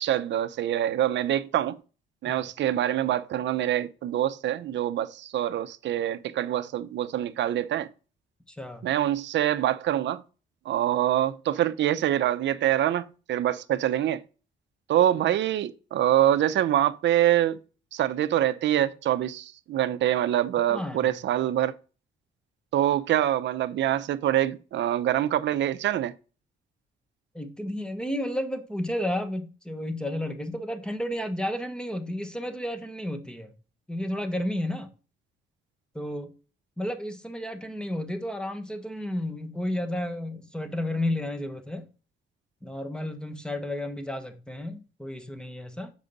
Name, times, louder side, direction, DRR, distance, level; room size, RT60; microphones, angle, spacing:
voice 1, 0.0-1.8 2.2-7.9 8.8-10.2 10.7-14.2 14.9-17.6 17.9-21.7 22.7-26.1, right 12 dB, 65° right, 0.6 m, -25 dB
voice 2, 8.5-8.8 20.7-21.1 27.3-33.5 33.9-34.9 35.9-36.3 36.8-41.9 42.6-45.9, left 1 dB, 5° left, 1.2 m, -32 dB
6.9 x 5.0 x 4.0 m
cardioid pair, 90°, 20 cm